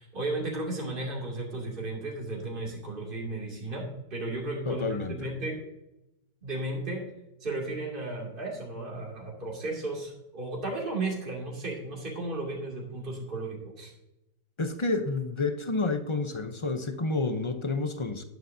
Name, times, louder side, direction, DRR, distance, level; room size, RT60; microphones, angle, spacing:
voice 1, 0.0-3.8 4.1-5.6 6.4-7.0 7.4-13.9, right 2 dB, 35° right, -2 dB, 2.7 m, -34 dB
voice 2, 4.7-5.3 14.6-18.2, left 3 dB, 35° left, 8 dB, 0.5 m, -29 dB
11.0 x 11.0 x 2.7 m, 0.93 s
omnidirectional pair, 1.7 m